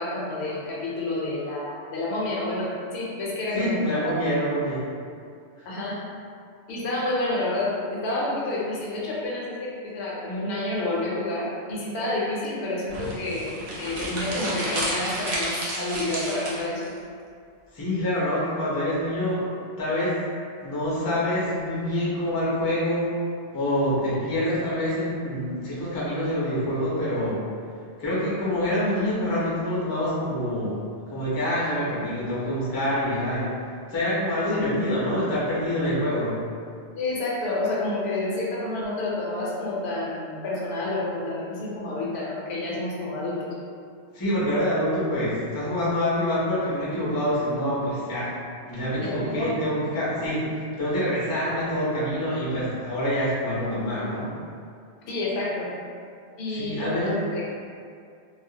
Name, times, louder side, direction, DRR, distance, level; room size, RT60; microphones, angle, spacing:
voice 1, 0.0-3.9 5.7-6.0 6.7-13.5 13.8-16.9 37.0-43.6 49.0-49.6 55.1-55.7 56.4-57.5, left 2 dB, 70° left, -5 dB, 0.8 m, -29 dB
voice 2, 3.5-4.8 5.6-5.7 17.7-19.5 19.8-20.2 20.6-23.2 23.5-27.4 28.0-30.8 31.1-33.6 33.9-36.4 44.1-48.3 48.7-54.3 56.5-57.2, left 1 dB, 30° left, -8 dB, 0.4 m, -26 dB
sound 1, 12.9-16.9, right 1 dB, 50° right, 0.5 m, -31 dB
2.3 x 2.0 x 2.7 m, 2.2 s
omnidirectional pair, 1.2 m